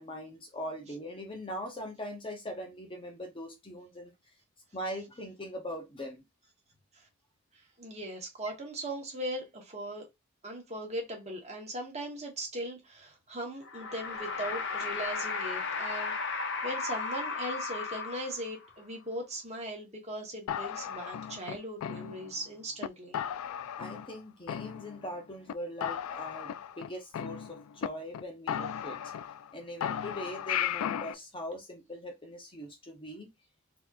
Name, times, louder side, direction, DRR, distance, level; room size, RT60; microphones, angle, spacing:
voice 1, 0.0-4.1 4.7-6.2 23.8-29.1 29.5-33.3, equal, 25° left, 0.8 m, -41 dB
voice 2, 7.8-10.0 10.4-16.1 16.6-23.2, right 1 dB, 30° right, 1.3 m, -39 dB
sound 1, 13.6-18.7, left 4 dB, 55° left, 0.7 m, -35 dB
sound 2, 20.5-22.4 22.8-22.9 23.1-24.2 24.5-25.2 25.5-25.6 25.8-27.9 28.1-28.2 28.5-29.5 29.8-31.1, left 9 dB, 90° left, 0.3 m, -36 dB
4.1 x 2.9 x 2.5 m
head